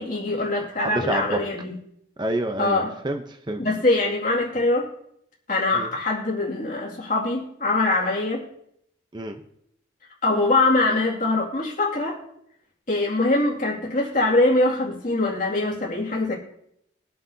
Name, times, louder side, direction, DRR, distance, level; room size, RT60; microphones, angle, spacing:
voice 1, 0.0-1.7 2.6-2.9 3.6-4.9 5.5-8.4 10.2-12.2 12.9-16.4, left 2 dB, 45° left, -2 dB, 2.3 m, -23 dB
voice 2, 0.8-1.4 2.2-3.2 3.5-3.7 5.7-5.9 9.1-9.4, right 1 dB, 25° right, 5 dB, 0.7 m, -27 dB
22.5 x 7.6 x 2.7 m, 0.73 s
head